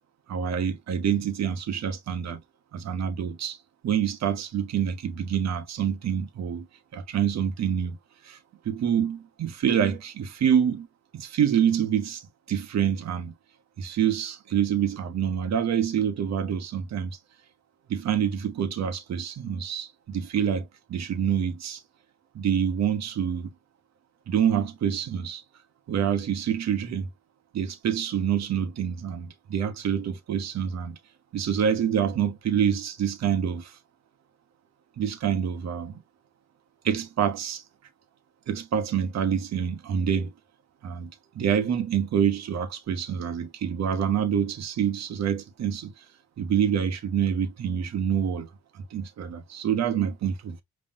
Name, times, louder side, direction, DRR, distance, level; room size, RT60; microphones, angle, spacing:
voice 1, 0.3-2.4 2.7-3.6 3.8-6.7 6.9-8.0 8.2-8.4 8.6-10.9 11.1-13.3 13.8-17.2 17.9-21.8 22.3-23.5 24.3-25.4 25.9-27.1 27.5-31.0 31.3-33.8 35.0-36.0 36.8-37.6 38.5-40.3 40.8-46.0 46.4-48.5 48.7-50.6, right 8 dB, 60° right, 1.2 m, -26 dB
5.5 x 3.2 x 2.4 m
cardioid pair, 90°, 30 cm